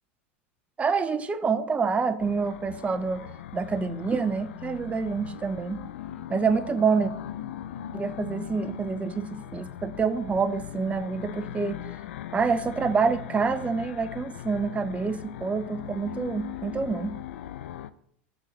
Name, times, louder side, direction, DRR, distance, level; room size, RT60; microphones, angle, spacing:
voice 1, 0.8-3.3 3.5-5.8 6.3-7.1 7.9-11.8 12.3-17.1, right 5 dB, 20° right, 10 dB, 0.7 m, -27 dB
sound 1, 2.2-17.9, left 11 dB, 75° left, 0.4 m, -39 dB
6.3 x 4.2 x 6.4 m, 0.66 s
hypercardioid pair, 95°, 7 cm